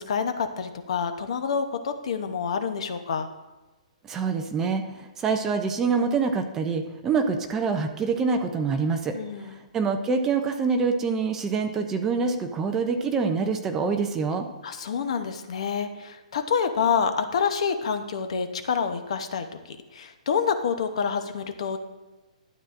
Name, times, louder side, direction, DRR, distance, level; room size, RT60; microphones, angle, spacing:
voice 1, 0.0-3.3 9.1-9.6 14.6-21.8, left 6 dB, 50° left, 8 dB, 0.8 m, -27 dB
voice 2, 4.0-14.5, right 5 dB, 10° right, 5 dB, 0.4 m, -26 dB
12.0 x 8.5 x 2.5 m, 1.1 s
hypercardioid pair, 175°, 4 cm